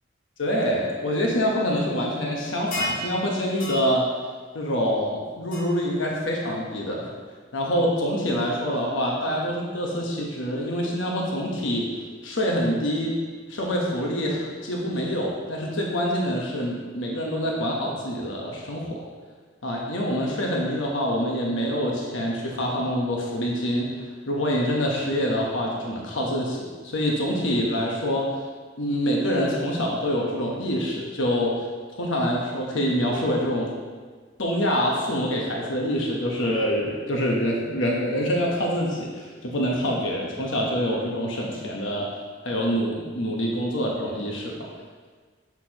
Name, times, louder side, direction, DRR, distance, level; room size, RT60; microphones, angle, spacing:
voice 1, 0.4-4.0 4.5-7.1 7.5-11.9 12.2-13.2 13.5-19.0 19.6-23.9 24.3-28.3 28.8-31.6 31.9-33.7 34.4-42.1 42.4-44.6, equal, 80° left, -2 dB, 1.0 m, -26 dB
sound 1, 2.7-3.1 3.6-3.8 5.5-5.6, equal, 45° left, 1.2 m, -29 dB
8.2 x 6.0 x 2.9 m, 1.5 s
head